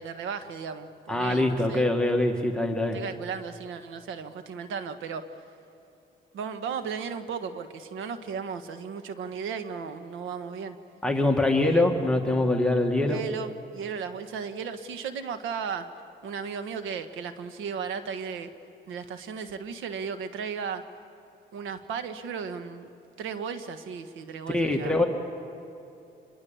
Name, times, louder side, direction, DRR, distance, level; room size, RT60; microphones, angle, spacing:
voice 1, 0.0-1.8 2.9-5.2 6.3-10.8 11.6-11.8 13.0-15.9 16.2-18.5 18.9-20.8 21.5-22.9 23.2-25.0, right 6 dB, 85° right, 9 dB, 1.5 m, -35 dB
voice 2, 1.1-3.0 11.0-13.2 24.5-25.0, left 2 dB, 5° left, 1 dB, 2.1 m, -24 dB
26.0 x 24.0 x 7.2 m, 2.8 s
cardioid pair, 90°, 20 cm